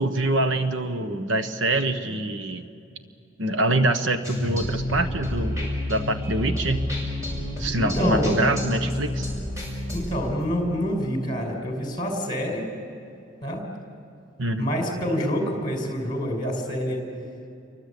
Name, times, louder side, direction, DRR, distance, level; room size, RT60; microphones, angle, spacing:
voice 1, 0.0-2.7 3.4-6.8 7.6-9.3 14.4-14.7, right 2 dB, 75° right, 8 dB, 1.3 m, -25 dB
sound 1, 4.2-10.7, left 1 dB, 15° right, 7.4 m, -29 dB
voice 2, 7.7-8.5 9.9-12.7 13.4-13.6 14.5-17.0, equal, 25° left, 2 dB, 5.3 m, -27 dB
29.0 x 24.0 x 8.5 m, 2.5 s
head